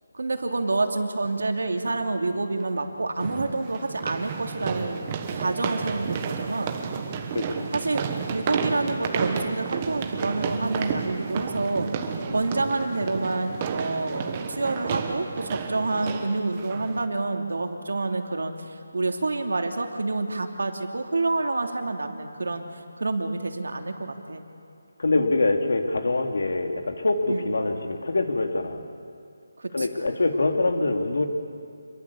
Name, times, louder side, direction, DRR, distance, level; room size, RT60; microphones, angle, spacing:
voice 1, 0.1-6.7 7.7-22.6 23.0-24.5 27.3-27.5 29.6-29.9, right 2 dB, 80° right, 4 dB, 2.8 m, -28 dB
sound 1, 1.2-1.3 3.2-17.1, right 6 dB, 20° right, 1.3 m, -32 dB
voice 2, 7.3-7.7 12.3-12.4 25.0-28.8 29.7-31.3, left 2 dB, 70° left, 5 dB, 2.7 m, -24 dB
27.0 x 22.5 x 7.2 m, 2.4 s
hypercardioid pair, 175°, 0 cm